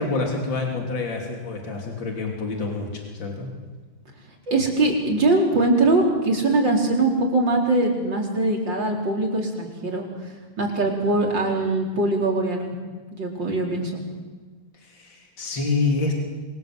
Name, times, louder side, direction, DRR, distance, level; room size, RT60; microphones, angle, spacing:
voice 1, 0.0-3.5 14.9-16.1, left 3 dB, 70° left, 0 dB, 4.1 m, -27 dB
voice 2, 4.5-12.7 13.1-14.0, right 2 dB, 65° right, 0 dB, 5.0 m, -22 dB
27.5 x 24.0 x 7.9 m, 1.4 s
omnidirectional pair, 2.2 m